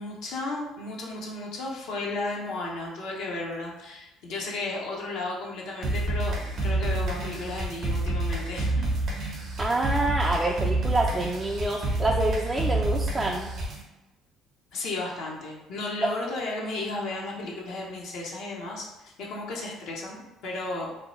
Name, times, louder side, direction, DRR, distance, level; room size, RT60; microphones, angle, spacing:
voice 1, 0.0-8.9 14.7-20.9, left 2 dB, 70° left, -2 dB, 0.6 m, -34 dB
sound 1, 5.8-13.8, right 2 dB, 55° right, 0.7 m, -28 dB
voice 2, 9.6-13.5, right 2 dB, 20° right, -1 dB, 0.3 m, -27 dB
2.6 x 2.2 x 3.0 m, 1.0 s
hypercardioid pair, 60°, 0 cm